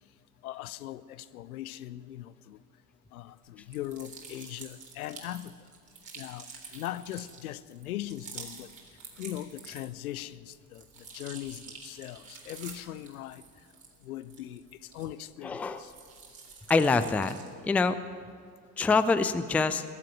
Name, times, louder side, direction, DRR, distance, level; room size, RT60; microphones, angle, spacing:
voice 1, 0.4-2.6 3.1-5.5 6.2-6.5 6.7-8.7 9.2-10.8 11.1-13.4 14.0-14.6 14.9-15.9, left 13 dB, 70° left, 0.7 m, -40 dB
sound 1, 3.6-10.1 10.5-15.4 15.7-17.6, right 5 dB, 40° right, 3.8 m, -48 dB
voice 2, 15.4-15.8 16.7-17.4 17.6-18.0 18.8-19.8, left 4 dB, 5° left, 0.4 m, -25 dB
21.0 x 7.6 x 9.1 m
figure-of-eight pair, 65°, 46 cm